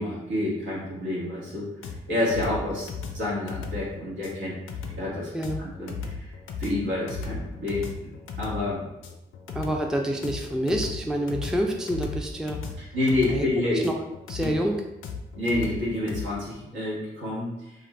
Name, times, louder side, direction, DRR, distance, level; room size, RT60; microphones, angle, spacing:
voice 1, 0.0-1.7 2.1-4.5 4.9-5.3 5.6-6.2 6.6-7.9 8.4-8.8 12.8-13.8 14.4-14.5 15.3-17.7, left 1 dB, 70° right, -6 dB, 1.3 m, -28 dB
sound 1, 1.8-16.2, left 5 dB, 75° left, 0.4 m, -36 dB
voice 2, 9.5-12.6 13.3-13.5 13.8-13.9 14.3-14.8, right 1 dB, 5° right, 2 dB, 0.4 m, -27 dB
2.6 x 2.4 x 3.2 m, 0.92 s
supercardioid pair, 40°, 21 cm